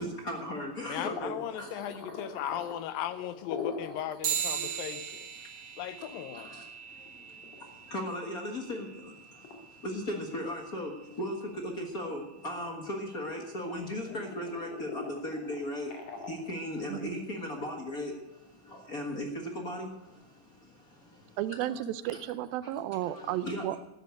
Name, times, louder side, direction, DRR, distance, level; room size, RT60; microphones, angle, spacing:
voice 1, 0.0-2.0 4.5-4.8 5.9-6.0 6.3-21.4 21.7-21.8 22.6-22.7 23.0-23.8, left 1 dB, 45° left, 1 dB, 1.2 m, -38 dB
voice 2, 0.8-5.3 5.8-6.5, left 10 dB, 80° left, 12 dB, 2.6 m, -37 dB
sound 1, 1.1-4.1 4.5-4.6 4.9-5.0 5.8-8.1 8.6-9.0 9.4-9.6 10.1-11.1 11.4-13.2 13.6-17.1, left 5 dB, 65° left, 3.5 m, -43 dB
sound 2, 4.2-14.1, right 8 dB, 70° right, 3.4 m, -41 dB
voice 3, 16.9-17.2 21.4-23.8, right 13 dB, 90° right, 15 dB, 2.5 m, -33 dB
13.5 x 10.0 x 8.3 m, 0.98 s
omnidirectional pair, 4.1 m